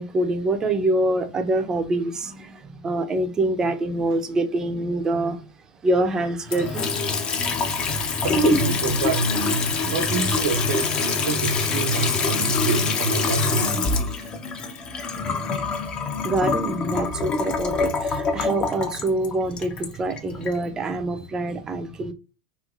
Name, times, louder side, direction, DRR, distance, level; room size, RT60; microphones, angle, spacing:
voice 1, 0.0-5.5 5.8-6.9 16.2-22.1, right 2 dB, 20° right, 0.5 m, -25 dB
Water tap faucet / Sink (filling or washing) / Trickle dribble, 6.5-20.6, left 4 dB, 25° left, 0.5 m, -25 dB
voice 2, 8.2-14.3, right 4 dB, 90° right, 0.6 m, -26 dB
3.1 x 2.8 x 2.4 m
supercardioid pair, 135°, 3 cm